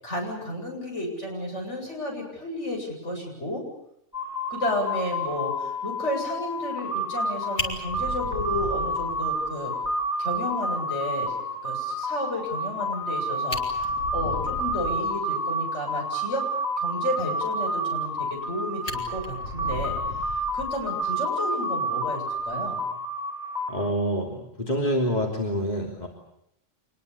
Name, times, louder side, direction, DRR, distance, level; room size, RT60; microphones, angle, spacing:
voice 1, 0.0-3.6 4.5-9.7 10.2-11.3 11.6-16.4 16.8-22.8, left 1 dB, 65° left, 0 dB, 8.3 m, -32 dB
sound 1, 4.1-23.9, equal, 5° right, 4.4 m, -29 dB
Fire, 7.1-7.2 7.6-9.5 9.8-9.9 10.3-10.4 10.8-10.9 13.0-13.1 13.4-15.1 18.0-18.5 18.8-21.0 22.3-22.6, left 1 dB, 85° left, 4.1 m, -36 dB
voice 2, 23.7-26.1, equal, 35° left, 0 dB, 3.3 m, -27 dB
27.0 x 21.0 x 8.5 m, 0.76 s
omnidirectional pair, 1.3 m